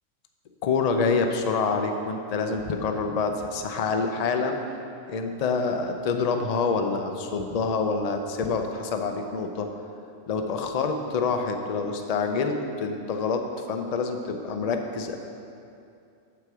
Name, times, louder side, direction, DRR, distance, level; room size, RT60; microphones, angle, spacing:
voice 1, 0.6-4.6 5.1-9.7 10.3-15.2, left 4 dB, 60° left, 5 dB, 0.4 m, -27 dB
7.8 x 7.1 x 4.8 m, 2.6 s
omnidirectional pair, 1.4 m